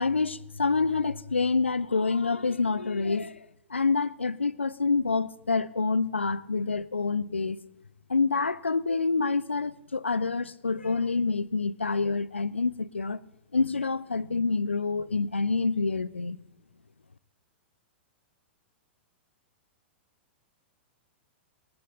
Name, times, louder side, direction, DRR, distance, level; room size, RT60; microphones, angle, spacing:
voice 1, 0.0-3.4 3.7-7.6 8.1-13.2 13.5-16.4, left 4 dB, 80° left, 0.5 m, -27 dB
19.5 x 13.5 x 3.9 m
figure-of-eight pair, 100°, 6 cm